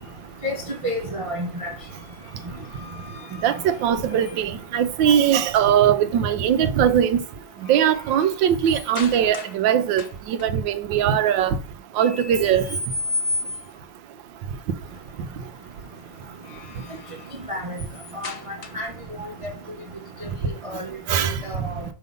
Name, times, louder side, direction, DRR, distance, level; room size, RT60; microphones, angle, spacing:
voice 1, 0.8-1.7 17.5-17.8 18.2-18.9 19.2-19.3 20.2-20.3 20.6-20.9 21.2-21.8, equal, 35° right, 0.5 m, -30 dB
sound 1, 1.8-4.7 6.5-6.8 7.2-9.6 9.9-10.5 12.0-13.9 16.2-19.0, left 3 dB, 90° left, 0.5 m, -35 dB
voice 2, 3.4-7.2 7.7-11.5 12.0-12.6 21.1-21.3, right 9 dB, 70° right, 1.3 m, -20 dB
5.6 x 5.4 x 5.3 m
omnidirectional pair, 2.2 m